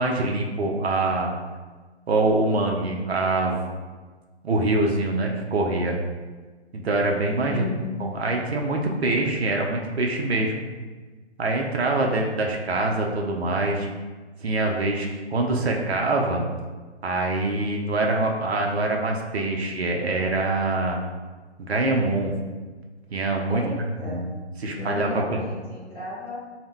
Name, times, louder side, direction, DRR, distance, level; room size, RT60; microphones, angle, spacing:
voice 1, 0.0-1.3 2.1-3.8 4.4-6.0 6.7-7.6 8.0-10.7 11.4-13.9 14.4-16.4 17.0-21.0 21.7-22.4 23.1-23.6 24.1-24.3 24.6-25.4, right 2 dB, 65° right, 1 dB, 0.5 m, -24 dB
voice 2, 7.4-7.9 23.5-24.2 24.7-26.4, left 3 dB, 10° left, -13 dB, 0.8 m, -34 dB
2.1 x 2.1 x 3.6 m, 1.4 s
figure-of-eight pair, 150°, 34 cm